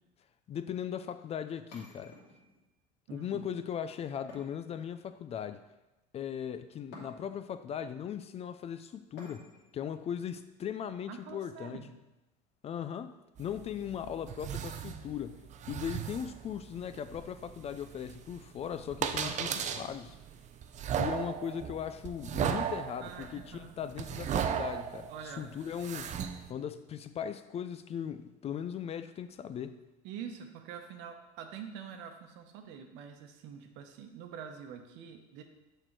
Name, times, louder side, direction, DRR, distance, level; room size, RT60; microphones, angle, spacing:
voice 1, 0.5-2.2 3.1-5.6 6.1-11.8 12.6-15.4 15.7-20.2 21.0-26.1 26.5-29.8, left 8 dB, 30° left, 0.4 m, -38 dB
sound 1, 1.7-2.7 4.3-5.3 6.9-7.5 9.2-9.8, left 2 dB, 70° left, 2.5 m, -52 dB
voice 2, 3.1-3.5 11.1-12.0 19.2-19.7 23.0-23.7 25.1-25.5 30.0-35.4, right 7 dB, 70° right, 1.0 m, -45 dB
sound 2, 13.4-26.5, right 8 dB, 40° right, 0.5 m, -37 dB
6.5 x 4.5 x 4.6 m
supercardioid pair, 105°, 20 cm